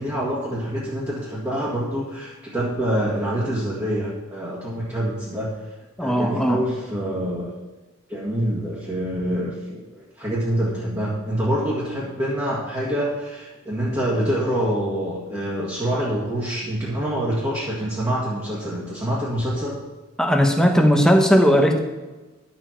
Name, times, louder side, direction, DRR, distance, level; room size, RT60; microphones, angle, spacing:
voice 1, 0.0-5.7 6.0-7.5 8.1-19.7, equal, 15° right, -8 dB, 1.9 m, -26 dB
voice 2, 6.0-6.6 20.2-21.8, equal, 5° left, 3 dB, 1.0 m, -17 dB
11.0 x 7.3 x 4.5 m, 1.2 s
head